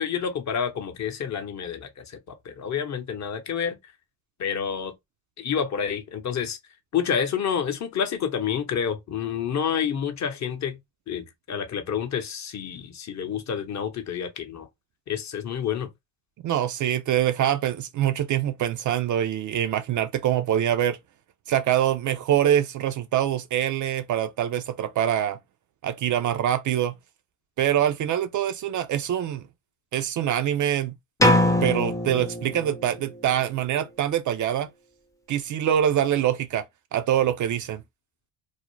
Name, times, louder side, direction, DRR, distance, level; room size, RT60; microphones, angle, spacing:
voice 1, 0.0-3.8 4.4-4.9 5.4-6.6 6.9-10.8 11.1-14.7 15.1-15.9, left 7 dB, 40° left, 0.7 m, -29 dB
voice 2, 16.4-21.0 21.5-25.4 25.8-26.9 27.6-29.4 29.9-30.9 31.2-34.7 35.3-36.6 36.9-37.8, right 10 dB, 45° right, 0.4 m, -24 dB
sound 1, 31.2-33.1, left 1 dB, 10° left, 0.5 m, -22 dB
2.5 x 2.1 x 3.0 m
supercardioid pair, 70°, 43 cm